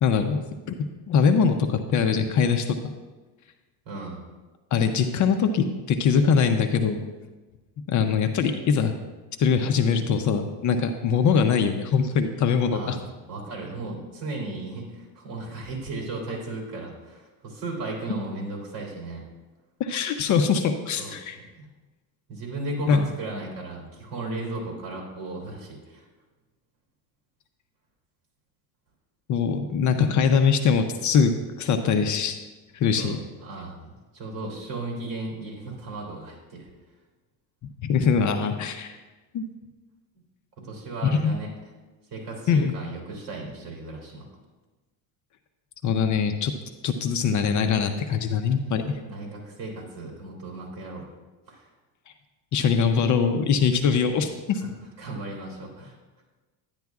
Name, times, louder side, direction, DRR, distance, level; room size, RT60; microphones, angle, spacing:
voice 1, 0.0-0.4 0.7-0.8 1.1-2.9 4.7-7.0 7.9-8.9 9.4-13.0 19.8-21.4 22.9-23.1 29.3-31.3 31.6-32.3 32.7-33.2 37.8-38.9 39.3-39.4 41.2-41.3 42.5-42.7 45.8-46.5 46.8-48.9 52.5-54.6, left 6 dB, 45° left, 7 dB, 0.6 m, -22 dB
voice 2, 3.8-4.3 12.7-13.0 13.3-19.3 21.0-21.7 22.3-26.0 33.0-36.7 40.6-41.5 42.1-44.3 48.5-48.7 49.0-51.1 51.5-51.7 54.6-54.7 55.0-56.0, right 2 dB, 50° right, -1 dB, 3.2 m, -36 dB
10.5 x 10.5 x 2.4 m, 1.2 s
cardioid pair, 130°, 42 cm